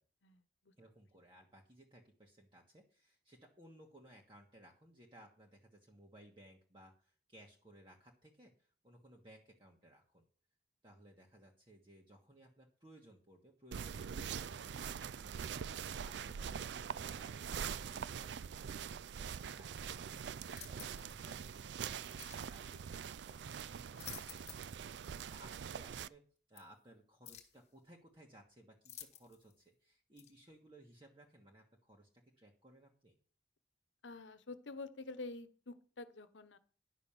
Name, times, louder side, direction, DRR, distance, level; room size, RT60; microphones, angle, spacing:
voice 1, 0.2-0.7 16.1-16.3 34.0-36.6, left 3 dB, 90° left, 13 dB, 1.0 m, -48 dB
voice 2, 0.8-10.2 10.8-22.2 22.4-33.1, right 1 dB, 25° right, -1 dB, 1.4 m, -61 dB
sound 1, 13.7-26.1, right 7 dB, 75° right, 0.4 m, -44 dB
sound 2, 20.5-21.2 22.2-22.5 23.7-24.8 25.1-25.2 26.6-26.7 27.2-27.6 28.8-29.5 30.2-30.3, left 10 dB, 35° left, 1.4 m, -52 dB
10.5 x 6.1 x 7.2 m, 0.43 s
head